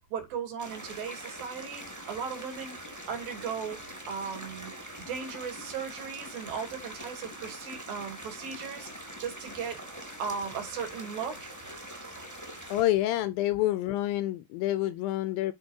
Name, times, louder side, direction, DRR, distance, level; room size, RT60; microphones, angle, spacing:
voice 1, 0.1-2.8 3.1-4.7 5.1-9.8 10.2-11.5, right 6 dB, 65° right, 4.1 m, -37 dB
sound 1, 0.6-12.8, right 1 dB, 5° right, 1.4 m, -43 dB
voice 2, 12.7-15.5, left 15 dB, 80° left, 2.2 m, -28 dB
10.5 x 5.0 x 2.8 m
omnidirectional pair, 4.5 m